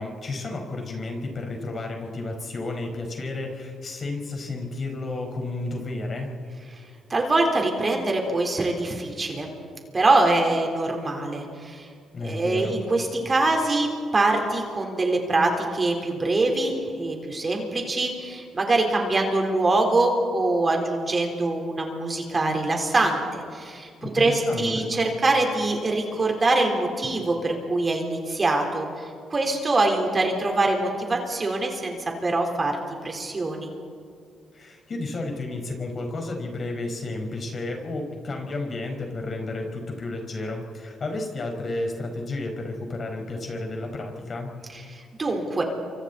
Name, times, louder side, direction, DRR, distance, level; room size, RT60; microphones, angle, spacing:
voice 1, 0.0-6.3 12.1-12.8 24.0-24.9 34.5-44.5, left 2 dB, 45° left, 2 dB, 5.1 m, -32 dB
voice 2, 7.1-9.5 9.9-11.8 12.2-29.1 29.3-32.0 32.2-32.7 33.0-33.7 44.9-45.6, right 2 dB, 30° right, 2 dB, 4.0 m, -24 dB
28.5 x 25.0 x 4.2 m, 2.2 s
cardioid pair, 90°, 0 cm